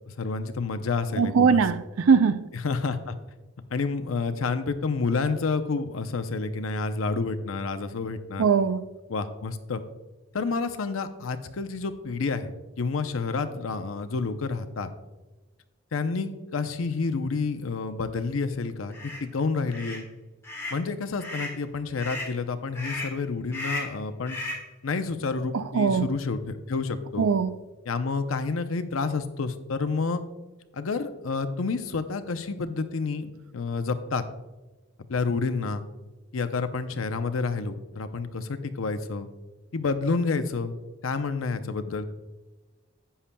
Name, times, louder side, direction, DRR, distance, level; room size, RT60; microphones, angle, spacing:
voice 1, 0.1-1.6 2.5-3.2 3.7-8.5 9.1-9.8 10.3-12.5 12.8-14.9 15.9-20.1 20.7-24.4 24.8-27.3 27.9-30.2 30.7-34.2 35.1-35.8 36.3-39.3 39.7-40.8 41.0-42.1, left 4 dB, 80° left, 9 dB, 0.6 m, -29 dB
voice 2, 1.2-1.8 2.1-2.4 8.4-8.8 25.5-26.1 27.2-27.5, right 6 dB, 85° right, 13 dB, 0.4 m, -20 dB
sound 1, 18.9-19.2 19.7-20.0 20.4-20.8 21.2-21.6 22.0-22.3 22.7-23.2 23.5-24.0 24.3-24.7, left 2 dB, 15° left, 1.6 m, -35 dB
11.0 x 8.4 x 2.2 m, 1.2 s
head